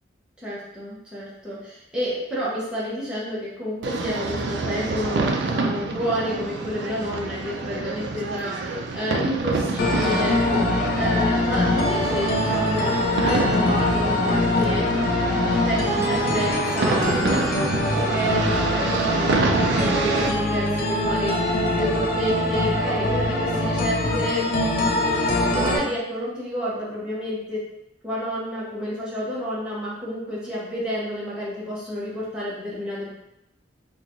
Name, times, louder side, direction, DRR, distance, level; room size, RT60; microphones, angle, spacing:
voice 1, 0.4-14.9 15.6-24.5 25.5-27.7 28.0-33.1, equal, 5° right, -9 dB, 0.9 m, -30 dB
sound 1, 3.8-20.3, right 3 dB, 70° right, 0.4 m, -27 dB
sound 2, 9.8-25.8, left 1 dB, 50° left, 0.5 m, -23 dB
3.7 x 2.3 x 3.0 m, 0.86 s
head